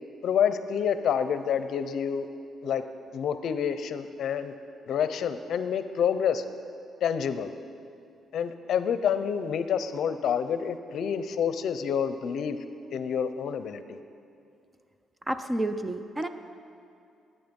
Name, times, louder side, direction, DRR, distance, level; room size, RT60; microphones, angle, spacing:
voice 1, 0.2-2.3 2.6-2.8 3.1-4.5 4.9-6.4 7.0-7.5 8.3-12.6 12.9-14.0, left 8 dB, 65° left, 11 dB, 0.6 m, -28 dB
voice 2, 15.3-16.3, right 1 dB, 15° right, 9 dB, 0.5 m, -30 dB
19.5 x 8.9 x 5.3 m, 2.5 s
cardioid pair, 140°, 0 cm